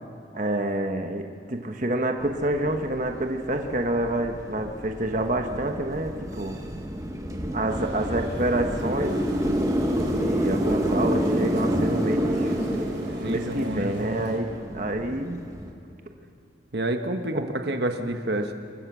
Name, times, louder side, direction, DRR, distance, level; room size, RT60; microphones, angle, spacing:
voice 1, 0.3-6.6 7.5-9.2 10.1-12.5 13.2-15.4 17.3-17.4, right 1 dB, 45° right, 4 dB, 1.2 m, -28 dB
sound 1, 2.2-15.7, equal, 20° right, 1.5 m, -29 dB
sound 2, 7.7-14.4, right 1 dB, 85° right, 4.5 m, -41 dB
voice 2, 13.2-14.0 16.7-18.5, right 1 dB, 65° right, 6 dB, 1.3 m, -28 dB
28.0 x 15.5 x 6.2 m, 2.6 s
head